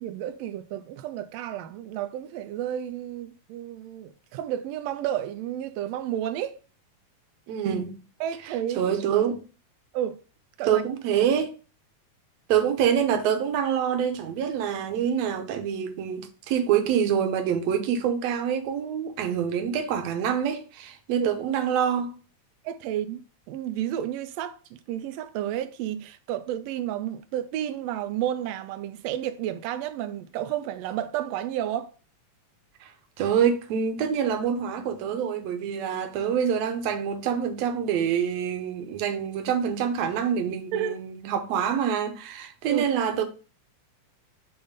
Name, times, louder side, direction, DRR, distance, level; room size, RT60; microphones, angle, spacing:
voice 1, 0.0-6.5 8.2-8.9 9.9-10.2 10.6-10.8 21.2-21.3 22.6-23.2 23.5-24.6 24.9-31.9 40.7-41.0 42.6-42.9, right 11 dB, 90° right, 1.4 m, -31 dB
voice 2, 7.5-8.0 8.8-9.4 10.7-11.5 12.5-22.1 32.8-32.9 33.2-43.2, right 8 dB, 70° right, 1.8 m, -26 dB
7.1 x 2.6 x 5.0 m
omnidirectional pair, 3.5 m